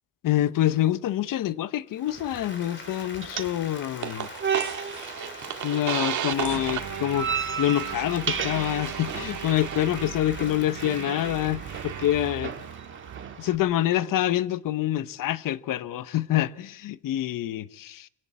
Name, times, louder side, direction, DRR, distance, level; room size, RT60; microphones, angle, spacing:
voice 1, 0.2-4.3 5.6-7.3 7.6-12.5 13.4-18.1, left 13 dB, 90° left, 1.1 m, -26 dB
Applause, 1.9-13.6, left 4 dB, 35° left, 3.7 m, -44 dB
sound 1, 2.1-13.6, right 7 dB, 40° right, 1.8 m, -35 dB
sound 2, 4.0-13.4, right 9 dB, 65° right, 2.1 m, -35 dB
26.0 x 17.5 x 8.4 m
cardioid pair, 130°, 32 cm